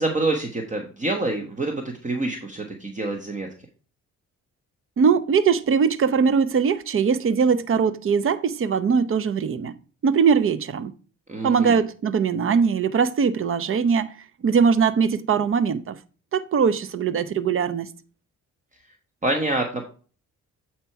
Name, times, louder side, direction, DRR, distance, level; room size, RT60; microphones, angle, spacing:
voice 1, 0.0-3.5 11.3-11.8 19.2-19.9, right 2 dB, 25° right, 1.3 m, -26 dB
voice 2, 5.0-9.7 10.0-10.9 11.4-14.2 14.4-16.0 16.3-17.9, right 6 dB, 45° right, 0.7 m, -21 dB
8.2 x 4.4 x 4.6 m
cardioid pair, 90°, 30 cm